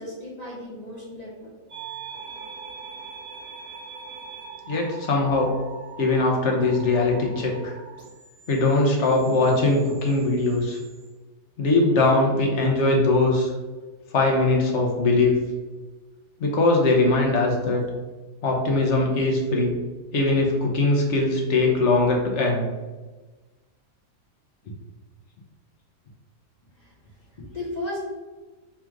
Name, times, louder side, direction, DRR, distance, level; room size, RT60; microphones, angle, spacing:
voice 1, 0.0-1.5 26.8-26.9 27.4-28.0, left 1 dB, 35° left, -7 dB, 0.8 m, -35 dB
sound 1, 1.7-11.1, right 5 dB, 55° right, 1.4 m, -42 dB
voice 2, 4.7-5.5 6.0-7.8 8.5-10.8 11.6-13.5 14.1-15.4 16.4-17.8 18.4-19.8 20.1-22.7, left 2 dB, 65° left, 0 dB, 1.1 m, -21 dB
3.4 x 2.5 x 4.5 m, 1.3 s
omnidirectional pair, 1.3 m